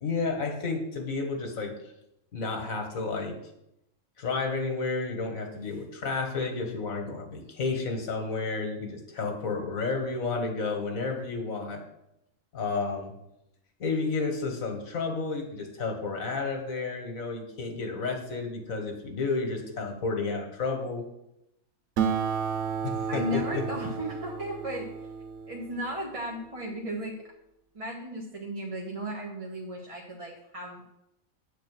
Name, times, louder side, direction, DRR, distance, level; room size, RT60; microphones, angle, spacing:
voice 1, 0.0-1.7 2.3-3.4 4.2-11.8 12.5-13.1 13.8-21.1 22.8-23.6, left 4 dB, 85° left, 3 dB, 1.9 m, -31 dB
Acoustic guitar, 22.0-26.8, right 7 dB, 90° right, 1.2 m, -33 dB
voice 2, 23.1-24.9 25.5-27.2 27.7-31.0, equal, 25° right, -2 dB, 1.1 m, -35 dB
8.9 x 4.4 x 7.5 m, 0.84 s
omnidirectional pair, 1.4 m